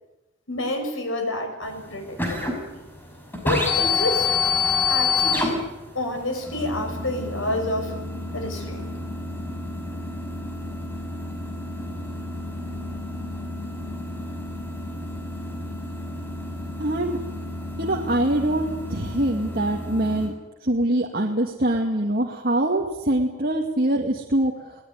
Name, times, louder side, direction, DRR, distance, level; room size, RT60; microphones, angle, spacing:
voice 1, 0.5-2.8 3.4-4.3 4.9-5.7 5.9-7.9 8.3-8.9, left 1 dB, 85° left, 4 dB, 6.6 m, -29 dB
sound 1, 1.6-20.3, left 4 dB, 10° left, 6.1 m, -29 dB
voice 2, 16.8-17.2 17.8-20.3 20.6-24.5, right 1 dB, 50° right, 0 dB, 2.4 m, -23 dB
21.5 x 19.0 x 9.7 m, 1.0 s
head